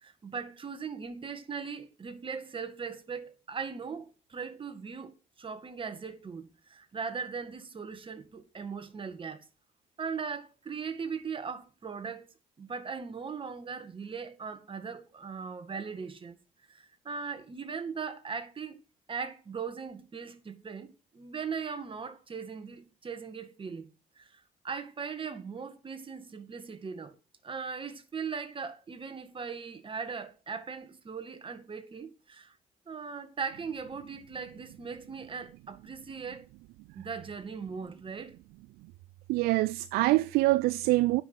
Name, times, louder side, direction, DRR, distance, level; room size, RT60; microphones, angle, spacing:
voice 1, 0.0-9.4 10.0-12.3 12.6-16.4 16.7-18.8 19.1-23.9 24.2-27.1 27.4-32.6 32.9-36.5 37.0-38.4, right 5 dB, 35° right, 2.1 m, -39 dB
voice 2, 39.3-41.2, right 20 dB, 85° right, 0.4 m, -25 dB
9.3 x 6.1 x 7.9 m
supercardioid pair, 70°, 15 cm